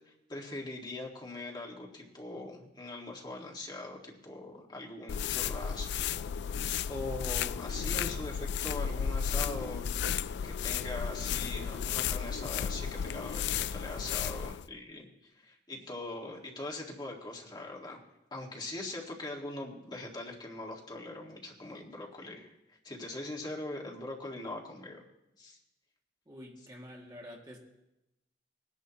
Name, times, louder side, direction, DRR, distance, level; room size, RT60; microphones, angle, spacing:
voice 1, 0.3-5.9 6.9-9.8 10.4-18.0 18.3-25.0 25.4-25.6, left 2 dB, 25° left, -1 dB, 1.7 m, -41 dB
sound 1, 5.1-14.7, left 7 dB, 75° left, 0.3 m, -33 dB
voice 2, 26.3-27.6, left 1 dB, 25° right, -1 dB, 2.0 m, -48 dB
19.0 x 11.0 x 2.9 m, 0.90 s
head